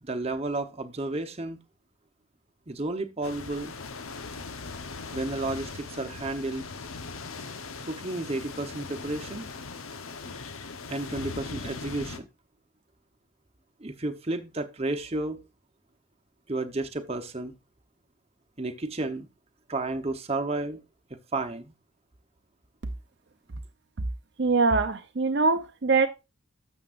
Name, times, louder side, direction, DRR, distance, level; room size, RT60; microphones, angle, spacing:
voice 1, 0.0-1.6 2.7-3.7 5.1-6.7 7.8-9.5 10.9-12.3 13.8-15.4 16.5-17.5 18.6-19.3 19.7-20.8 21.1-21.7, right 2 dB, 30° right, 0.9 m, -32 dB
sound 1, 3.2-12.2, left 4 dB, 90° left, 1.0 m, -40 dB
voice 2, 24.4-26.1, right 4 dB, 55° right, 0.6 m, -23 dB
11.5 x 7.2 x 2.5 m
head